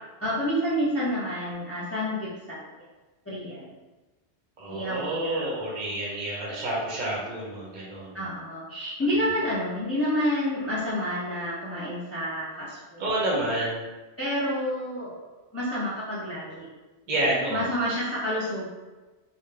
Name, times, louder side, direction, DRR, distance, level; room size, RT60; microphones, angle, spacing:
voice 1, 0.2-2.6 3.3-3.7 4.7-5.5 6.0-6.3 8.1-13.0 14.2-15.2 15.5-16.7 17.5-18.7, equal, 15° left, -9 dB, 0.7 m, -29 dB
voice 2, 4.6-8.2 13.0-13.8 17.1-17.7, right 1 dB, 50° right, -4 dB, 0.8 m, -29 dB
3.7 x 2.1 x 3.3 m, 1.2 s
omnidirectional pair, 1.1 m